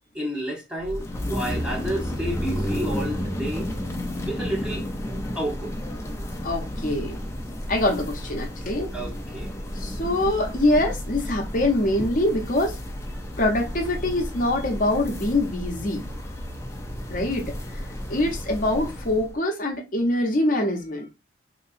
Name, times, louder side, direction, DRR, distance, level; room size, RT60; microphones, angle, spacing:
voice 1, 0.1-3.7 4.2-4.9 5.3-5.7 8.9-9.6 12.0-12.1, right 1 dB, 5° right, 0.9 m, -31 dB
sound 1, 0.8-19.3, equal, 15° left, 0.5 m, -32 dB
voice 2, 6.4-7.2 7.7-8.9 9.7-12.8 13.4-16.1 17.1-17.8 18.1-21.1, left 1 dB, 45° left, 0.8 m, -24 dB
3.7 x 3.0 x 2.5 m
head